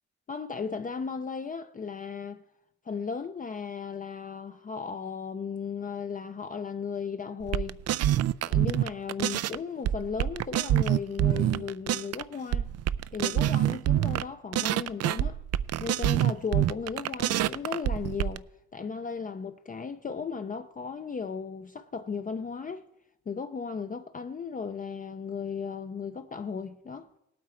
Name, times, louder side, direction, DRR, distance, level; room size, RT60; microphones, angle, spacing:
voice 1, 0.3-2.4 2.8-7.8 8.4-12.7 13.1-15.4 15.8-18.4 18.7-22.9 23.3-27.1, left 5 dB, 25° left, 0.6 m, -36 dB
sound 1, 7.4-9.6 9.8-12.2 12.5-14.2 14.5-18.4, right 12 dB, 55° right, 0.5 m, -26 dB
18.5 x 8.7 x 4.5 m
cardioid pair, 90°, 30 cm